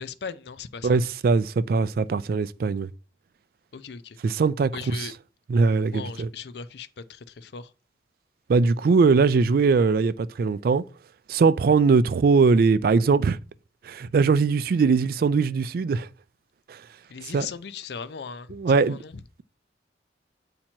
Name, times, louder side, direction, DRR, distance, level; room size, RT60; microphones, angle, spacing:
voice 1, 0.0-1.0 3.7-4.2 4.7-5.1 5.8-7.7 17.1-19.2, left 6 dB, 65° left, 0.5 m, -38 dB
voice 2, 0.8-2.9 4.2-5.1 5.5-6.3 8.5-10.8 11.3-13.4 13.8-16.1 16.7-16.8 17.3-17.5 18.5-19.0, right 4 dB, 55° right, 0.3 m, -21 dB
8.6 x 2.9 x 4.3 m
head